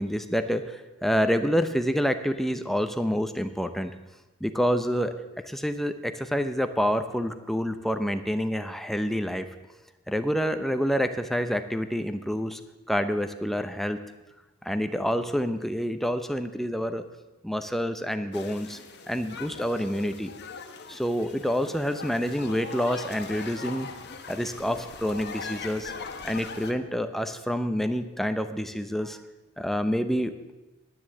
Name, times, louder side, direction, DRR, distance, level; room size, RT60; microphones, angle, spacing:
voice 1, 0.0-3.9 4.4-5.1 5.4-9.5 10.1-12.6 12.9-14.0 14.6-17.0 17.4-18.8 19.1-20.3 20.9-23.9 24.3-25.9 26.2-29.2 29.6-30.3, equal, ahead, 8 dB, 0.6 m, -27 dB
sound 1, 18.3-26.7, left 4 dB, 50° left, 1.2 m, -40 dB
10.0 x 10.0 x 7.6 m, 1.1 s
head